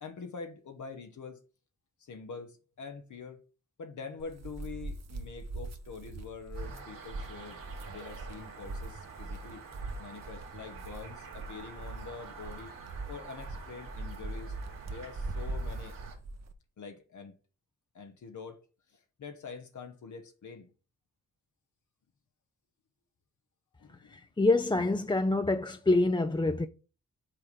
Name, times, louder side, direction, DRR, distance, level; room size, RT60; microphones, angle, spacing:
voice 1, 0.0-1.4 2.0-3.4 3.8-7.6 7.9-9.6 10.0-12.7 13.1-14.6 14.8-16.0 16.8-17.3 17.9-18.6 18.9-20.7 23.8-24.2, left 5 dB, 65° left, 1.0 m, -45 dB
sound 1, 4.2-16.5, right 2 dB, 55° right, 0.9 m, -41 dB
sound 2, 6.5-16.1, right 5 dB, 85° right, 1.9 m, -48 dB
voice 2, 24.1-26.7, left 2 dB, 15° left, 0.5 m, -26 dB
5.6 x 3.9 x 5.1 m
supercardioid pair, 45°, 33 cm